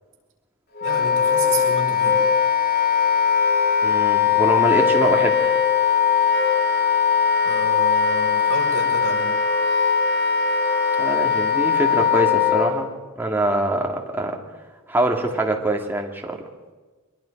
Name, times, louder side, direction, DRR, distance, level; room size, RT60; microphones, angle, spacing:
Wind instrument woodwind instrument, 0.8-12.7, left 7 dB, 45° left, 2.9 m, -20 dB
voice 1, 0.8-2.2 7.4-9.3, right 3 dB, 60° right, -2 dB, 6.1 m, -31 dB
voice 2, 3.8-5.6 11.0-12.9 13.2-14.4 14.9-16.4, right 1 dB, 10° right, 1 dB, 2.0 m, -23 dB
24.0 x 22.0 x 5.2 m, 1.3 s
head